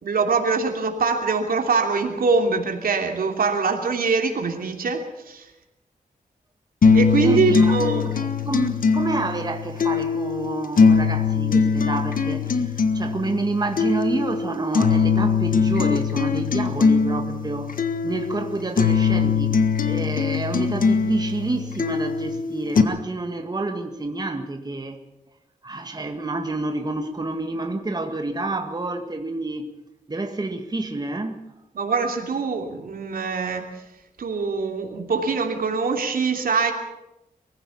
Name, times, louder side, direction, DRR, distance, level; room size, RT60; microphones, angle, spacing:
voice 1, 0.0-5.4 6.9-8.1 31.7-33.7 34.2-36.7, right 4 dB, 85° right, 4 dB, 3.0 m, -23 dB
sound 1, 6.8-22.8, left 5 dB, 70° left, 1.6 m, -21 dB
voice 2, 7.2-7.8 8.1-17.8 18.0-25.0 25.6-29.7 30.1-31.5, right 2 dB, 30° right, 5 dB, 1.9 m, -29 dB
23.5 x 16.0 x 7.2 m, 0.91 s
wide cardioid pair, 105°, 15 cm